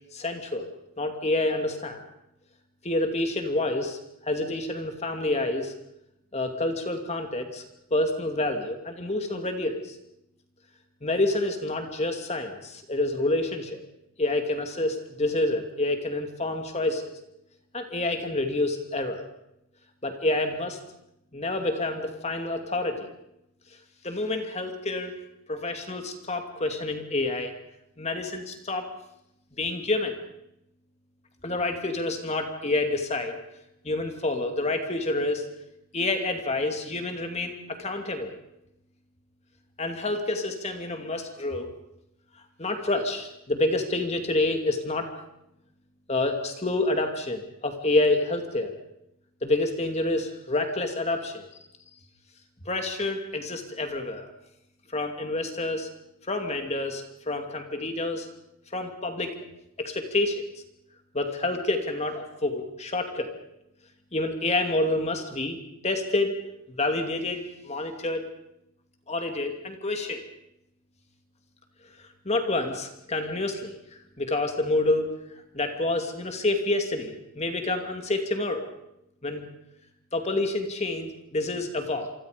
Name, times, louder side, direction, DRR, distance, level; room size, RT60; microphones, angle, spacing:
voice 1, 0.1-0.7 1.0-2.0 2.8-5.7 6.3-7.6 7.9-10.0 11.0-13.8 14.2-17.1 17.7-19.2 20.0-20.8 21.3-23.1 24.0-25.1 25.5-27.5 28.0-28.9 29.6-30.2 31.4-33.4 33.8-35.5 35.9-38.3 39.8-41.7 42.6-45.1 46.1-48.7 49.4-51.5 52.7-54.3 54.9-55.9 56.3-58.3 58.7-59.4 59.8-60.4 61.1-63.3 64.1-65.6 65.8-66.3 66.7-68.3 69.1-70.2 72.0-75.1 75.5-78.7 79.2-79.4 80.1-82.1, left 2 dB, 30° left, 5 dB, 2.6 m, -28 dB
28.0 x 24.0 x 5.2 m, 0.83 s
head